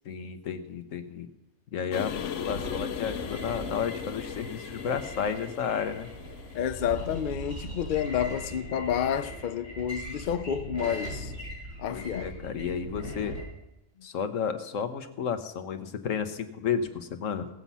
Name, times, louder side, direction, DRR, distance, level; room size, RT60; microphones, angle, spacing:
voice 1, 0.0-1.3 1.7-6.1 11.9-13.4 14.0-17.5, left 7 dB, 90° left, 1.3 m, -32 dB
sound 1, 1.9-7.3, left 8 dB, 75° left, 1.1 m, -38 dB
sound 2, 2.4-13.4, right 1 dB, 90° right, 6.1 m, -40 dB
voice 2, 6.5-11.3 11.8-12.3, left 9 dB, 55° left, 0.6 m, -30 dB
18.0 x 7.3 x 5.5 m
omnidirectional pair, 1.3 m